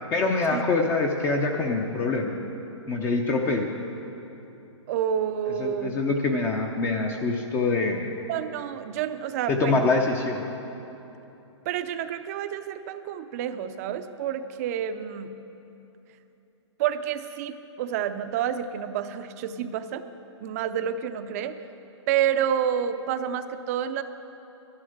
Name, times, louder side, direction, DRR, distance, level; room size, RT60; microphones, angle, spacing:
voice 1, 0.1-2.4 2.9-3.7 5.6-8.1 9.5-10.4, left 3 dB, 15° left, 2 dB, 0.6 m, -25 dB
voice 2, 4.9-6.0 8.3-9.9 11.7-15.3 16.8-20.0 20.4-21.6 22.1-24.0, right 9 dB, 30° right, 10 dB, 0.6 m, -29 dB
11.5 x 11.0 x 6.6 m, 3.0 s
hypercardioid pair, 155°, 16 cm